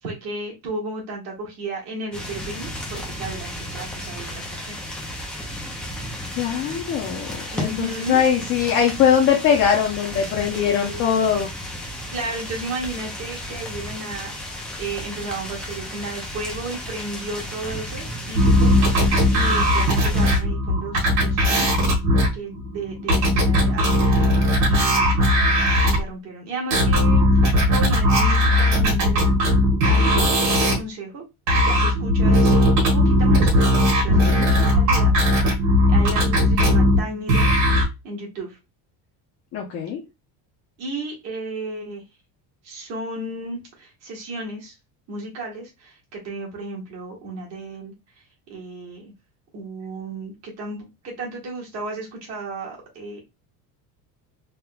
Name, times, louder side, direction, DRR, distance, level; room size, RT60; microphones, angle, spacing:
voice 1, 0.0-5.0 7.5-8.2 10.5-11.1 12.1-21.9 22.3-24.1 24.7-25.3 25.9-29.5 29.9-31.2 31.6-32.6 32.9-33.7 34.0-35.1 35.9-37.6 38.0-38.6 40.8-42.0 42.6-44.7 45.1-47.9 48.5-49.1 49.5-53.2, right 2 dB, 40° right, -2 dB, 1.4 m, -34 dB
sound 1, 2.1-20.4, left 1 dB, 5° left, 0.3 m, -34 dB
voice 2, 6.4-11.5 18.6-18.9 24.6-24.9 34.1-34.5 39.5-40.0, left 8 dB, 35° left, -1 dB, 0.7 m, -22 dB
sound 2, 18.4-26.0 26.7-30.7 31.5-37.8, left 1 dB, 85° right, 1.6 m, -18 dB
3.5 x 2.9 x 2.2 m, 0.23 s
cardioid pair, 175°, 39 cm